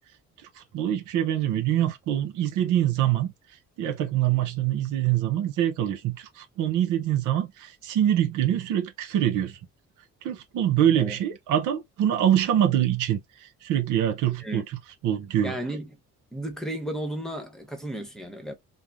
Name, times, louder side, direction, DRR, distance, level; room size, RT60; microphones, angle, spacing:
voice 1, 0.7-3.3 3.8-9.6 10.2-13.2 13.6-14.6 15.0-15.5, right 11 dB, 90° right, 0.7 m, -24 dB
voice 2, 15.4-16.0 16.3-18.5, right 1 dB, ahead, 0.9 m, -34 dB
3.1 x 2.1 x 2.3 m
cardioid pair, 90°, 30 cm